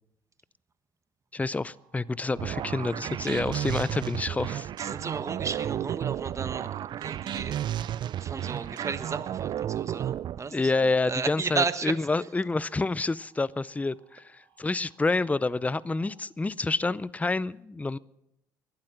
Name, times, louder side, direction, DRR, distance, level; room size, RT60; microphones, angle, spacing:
voice 1, 1.3-4.7 10.5-18.0, left 3 dB, 15° left, 21 dB, 0.6 m, -28 dB
sound 1, 1.6-16.1, right 7 dB, 80° right, 7.0 m, -63 dB
sound 2, 2.3-10.4, right 11 dB, 50° right, 0.5 m, -32 dB
voice 2, 2.8-3.4 4.8-7.7 7.9-10.7 11.0-12.0, right 5 dB, 30° right, 11 dB, 1.3 m, -34 dB
20.0 x 12.0 x 6.0 m, 0.79 s
hypercardioid pair, 55°, 10 cm